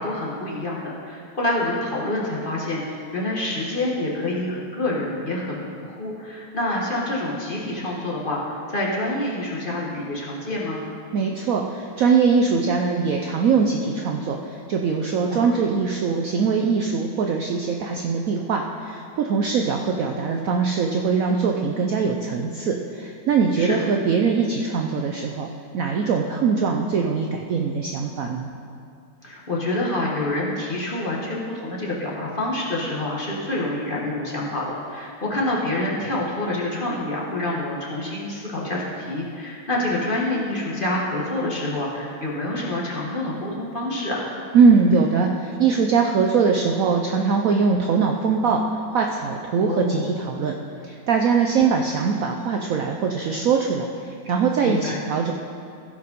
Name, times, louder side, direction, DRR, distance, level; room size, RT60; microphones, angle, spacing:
voice 1, 0.0-10.8 15.3-15.5 23.6-23.8 29.2-44.3 49.6-50.1 54.6-55.0, left 1 dB, 30° left, -4 dB, 1.3 m, -27 dB
voice 2, 11.1-28.5 44.5-48.6 48.9-55.3, right 5 dB, 85° right, 2 dB, 0.7 m, -22 dB
15.5 x 5.2 x 5.3 m, 2.4 s
omnidirectional pair, 2.2 m